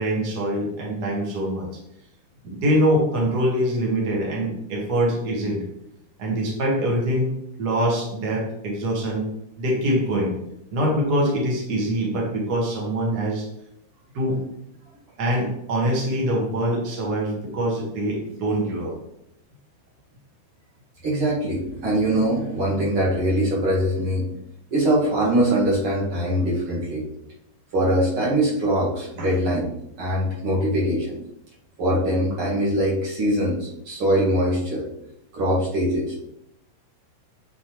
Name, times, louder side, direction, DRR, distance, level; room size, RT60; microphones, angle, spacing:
voice 1, 0.0-1.7 2.4-5.6 6.2-7.3 7.6-9.2 9.6-10.3 10.7-13.4 14.1-14.4 15.2-18.9 29.2-29.3, equal, 80° right, -2 dB, 0.9 m, -24 dB
voice 2, 21.0-24.3 24.7-27.0 27.7-29.7 30.0-31.2 31.8-34.9 35.3-36.2, right 1 dB, 45° right, -5 dB, 2.0 m, -22 dB
8.3 x 4.3 x 3.0 m, 0.79 s
omnidirectional pair, 4.1 m